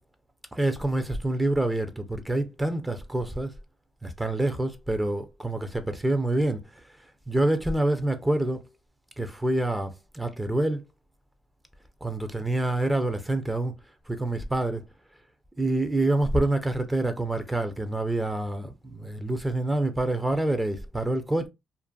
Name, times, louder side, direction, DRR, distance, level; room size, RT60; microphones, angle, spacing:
voice 1, 0.5-3.5 4.0-6.6 7.3-8.6 9.2-10.8 12.0-13.7 14.1-14.8 15.6-21.5, right 1 dB, 10° right, 0.5 m, -27 dB
2.5 x 2.4 x 2.3 m
cardioid pair, 90°, 0 cm